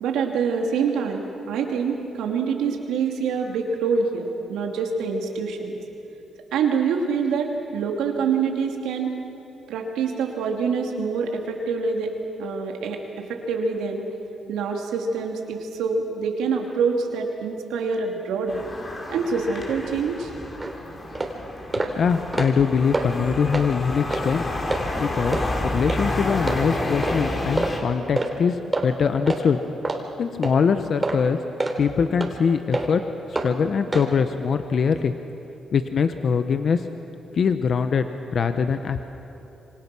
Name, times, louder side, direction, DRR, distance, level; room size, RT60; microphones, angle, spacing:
voice 1, 0.0-5.8 6.5-9.1 9.7-12.1 12.4-14.0 14.5-18.6 19.1-20.3, right 5 dB, 90° right, 2 dB, 2.7 m, -25 dB
sound 1, 18.5-27.8, left 2 dB, 40° left, 4.7 m, -30 dB
sound 2, 20.6-20.7 21.1-21.3 21.7-21.9 22.2-22.6 22.9-23.1 23.5-23.7 24.1-24.2 24.7-24.8 25.3-25.5 25.9-26.0 26.5-26.6 27.0-27.2 27.6-27.7 28.2-28.3 28.7-28.8 29.3-29.4 29.8-30.0 30.4-30.6 31.0-31.2 31.6-31.8 32.2-32.3 32.7-32.9 33.3-33.5 33.9-34.1, right 2 dB, 25° right, 3.6 m, -26 dB
voice 2, 21.9-24.5 25.0-25.4 25.6-29.6 30.2-31.4 31.8-33.0 33.4-35.1 35.7-36.9 37.3-38.1 38.3-39.0, left 6 dB, 60° left, 8 dB, 1.1 m, -22 dB
27.0 x 25.0 x 6.2 m, 2.9 s
cardioid pair, 70°, 0 cm